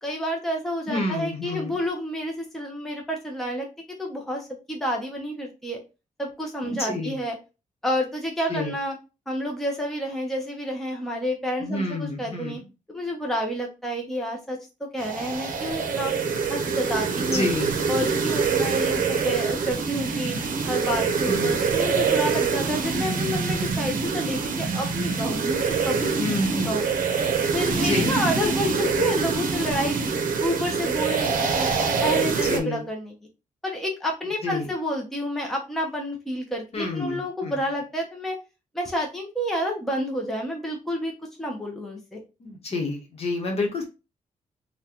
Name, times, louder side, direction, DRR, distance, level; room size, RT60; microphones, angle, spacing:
voice 1, 0.0-3.7 4.0-5.8 6.2-7.4 7.8-9.0 9.3-12.6 12.9-16.1 16.5-17.5 17.9-20.4 20.7-26.1 26.5-26.8 27.5-30.1 30.4-31.7 32.0-33.1 33.6-38.4 38.7-41.1 41.4-42.2, equal, ahead, 0 dB, 0.6 m, -29 dB
voice 2, 0.9-1.8 6.6-7.2 8.5-8.7 11.6-12.7 17.2-17.8 21.2-21.7 26.2-26.8 27.7-28.2 32.4-32.9 34.4-34.7 36.7-37.6 42.4-43.8, left 2 dB, 45° left, 2 dB, 0.9 m, -29 dB
sound 1, 15.0-32.6, right 5 dB, 75° right, 0.6 m, -25 dB
3.7 x 2.2 x 2.8 m, 0.29 s
wide cardioid pair, 160°, 14 cm